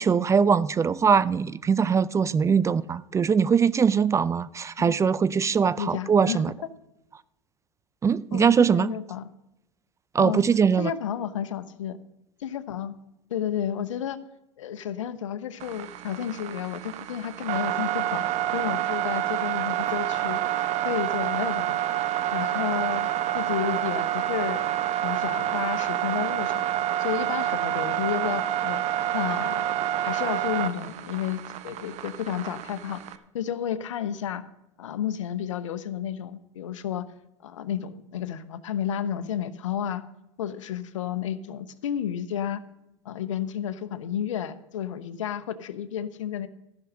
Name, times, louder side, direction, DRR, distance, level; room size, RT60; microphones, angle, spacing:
voice 1, 0.0-6.5 8.0-8.9 10.1-10.9, right 6 dB, 20° right, 0.4 m, -22 dB
voice 2, 5.8-6.4 8.3-9.3 10.2-10.4 10.8-12.0 12.4-13.0 13.3-14.2 14.6-18.2 18.5-20.4 20.8-21.8 22.3-23.1 23.3-24.7 25.0-26.6 27.0-28.8 29.1-29.6 30.0-33.0 33.3-34.4 34.8-37.0 37.4-40.0 40.4-42.6 43.0-46.5, left 9 dB, 85° left, 1.0 m, -31 dB
sound 1, 15.6-33.2, right 12 dB, 45° right, 1.0 m, -28 dB
14.0 x 6.3 x 6.5 m
hypercardioid pair, 100°, 16 cm